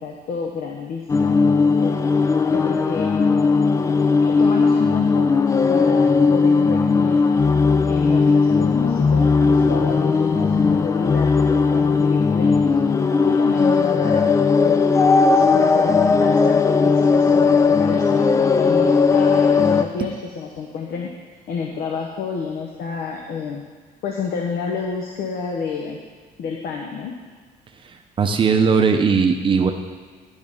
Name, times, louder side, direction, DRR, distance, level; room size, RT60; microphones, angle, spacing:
voice 1, 0.0-1.9 2.5-3.1 4.2-5.4 5.7-7.3 7.9-12.8 13.2-14.3 14.6-14.9 15.3-21.1 21.5-23.6 24.0-26.0 26.4-27.1, left 5 dB, 60° left, 1 dB, 0.8 m, -29 dB
sound 1, 1.1-19.9, left 4 dB, 20° left, 0.3 m, -17 dB
voice 2, 27.8-29.7, right 5 dB, 30° right, 4 dB, 0.7 m, -18 dB
10.5 x 3.5 x 5.3 m, 1.5 s
cardioid pair, 110°, 17 cm